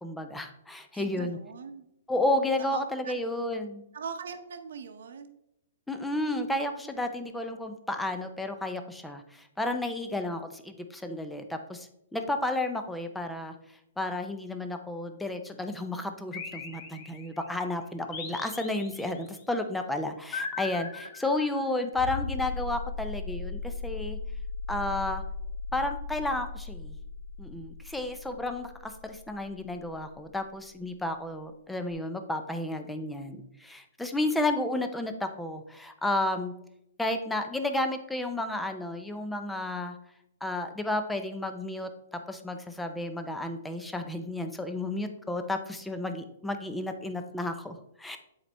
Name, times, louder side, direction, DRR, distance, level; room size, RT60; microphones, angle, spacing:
voice 1, 0.0-1.4 2.1-3.8 5.9-13.5 14.0-24.2 24.7-25.2 25.7-27.0 27.4-36.5 37.0-40.0 40.4-48.2, left 1 dB, 5° left, 7 dB, 0.5 m, -32 dB
voice 2, 0.9-1.8 2.6-3.2 3.9-5.3, right 6 dB, 70° right, 8 dB, 0.8 m, -41 dB
sound 1, 16.3-17.5 18.1-19.3 20.3-21.8, left 4 dB, 30° left, 0.9 m, -39 dB
sound 2, 21.9-30.4 31.9-32.0, left 4 dB, 55° left, 0.6 m, -37 dB
7.9 x 4.2 x 3.4 m, 0.81 s
hypercardioid pair, 145°, 0 cm